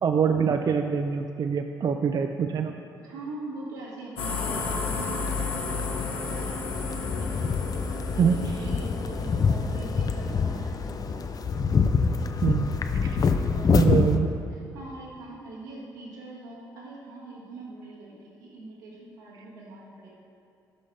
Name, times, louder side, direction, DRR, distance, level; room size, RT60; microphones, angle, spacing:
voice 1, 0.0-2.7 8.2-8.4 12.4-12.8 13.0-13.2 13.7-14.3, right 6 dB, 40° right, 6 dB, 0.4 m, -24 dB
voice 2, 3.0-6.5 6.8-7.5 8.1-11.4 13.5-14.0 14.5-20.1, right 2 dB, 75° right, -6 dB, 1.7 m, -42 dB
sound 1, 4.2-11.0, left 4 dB, 65° left, 1.1 m, -33 dB
sound 2, 4.4-14.2, left 5 dB, 35° left, 0.5 m, -27 dB
12.0 x 6.3 x 3.2 m, 2.5 s
figure-of-eight pair, 40°, 10 cm